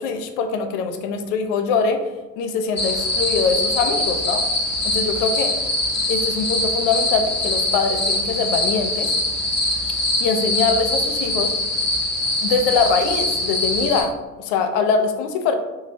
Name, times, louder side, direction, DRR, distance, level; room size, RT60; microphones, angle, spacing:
voice 1, 0.0-2.0 2.4-4.4 4.8-5.6 6.1-9.1 10.2-11.5 12.4-14.1 14.4-15.5, left 5 dB, 65° left, 7 dB, 0.5 m, -22 dB
sound 1, 2.8-14.0, left 1 dB, 35° left, 0.9 m, -23 dB
2.9 x 2.3 x 2.8 m, 1.1 s
hypercardioid pair, 55°, 44 cm